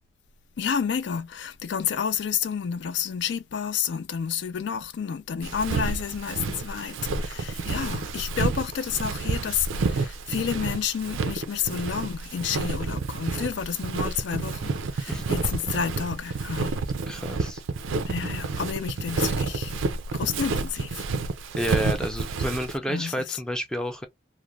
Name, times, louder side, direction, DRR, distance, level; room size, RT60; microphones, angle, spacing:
voice 1, 0.6-16.8 18.1-19.7 20.1-21.1 22.9-23.4, left 7 dB, 65° left, 0.4 m, -30 dB
Walk footsteps, 5.4-22.8, right 4 dB, 85° right, 0.4 m, -30 dB
voice 2, 17.1-17.6 21.6-24.1, equal, 5° left, 0.4 m, -30 dB
2.4 x 2.1 x 3.0 m
head